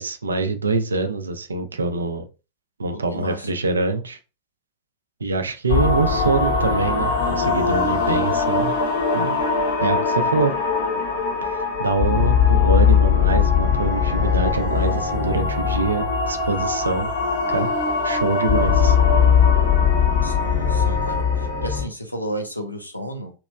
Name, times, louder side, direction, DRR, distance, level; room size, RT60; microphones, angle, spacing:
voice 1, 0.0-2.3 2.8-4.2 5.2-8.7 9.1-9.4 9.8-10.5 11.4-17.1 17.5-17.7 18.0-19.0, right 3 dB, 75° right, 8 dB, 0.5 m, -24 dB
voice 2, 2.9-3.5 20.2-23.3, equal, 85° left, 5 dB, 0.6 m, -33 dB
sound 1, 5.7-21.8, left 6 dB, 60° left, 1.3 m, -20 dB
3.0 x 2.9 x 2.3 m, 0.31 s
figure-of-eight pair, 90°, 0 cm